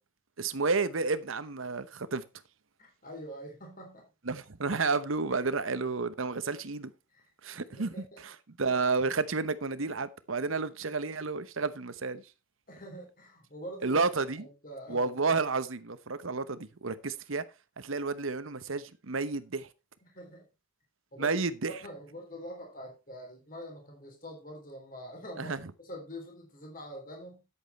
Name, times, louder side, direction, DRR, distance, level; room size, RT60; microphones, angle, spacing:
voice 1, 0.4-2.2 4.3-6.9 7.4-8.3 8.6-12.2 13.8-14.5 14.9-17.4 17.8-19.7 21.2-21.7 25.4-25.6, right 4 dB, 80° right, 1.0 m, -31 dB
voice 2, 2.8-4.1 5.3-5.4 7.1-8.2 10.7-10.8 12.7-14.1 14.4-15.2 20.0-20.5 21.1-27.4, equal, 40° left, 3.6 m, -45 dB
10.0 x 8.5 x 4.2 m
head